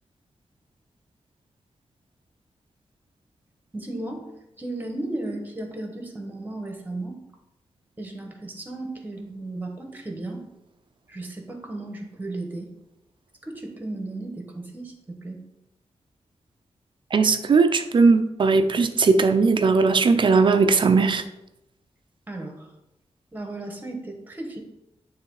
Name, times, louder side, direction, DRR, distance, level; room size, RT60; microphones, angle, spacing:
voice 1, 3.7-4.3 4.6-7.2 8.0-10.4 11.1-12.7 13.4-15.4 22.3-22.7 23.3-24.6, right 2 dB, 15° right, 3 dB, 1.2 m, -35 dB
voice 2, 17.1-21.2, right 4 dB, 45° right, 9 dB, 0.5 m, -18 dB
9.6 x 3.3 x 4.8 m, 0.89 s
wide cardioid pair, 145°, 11 cm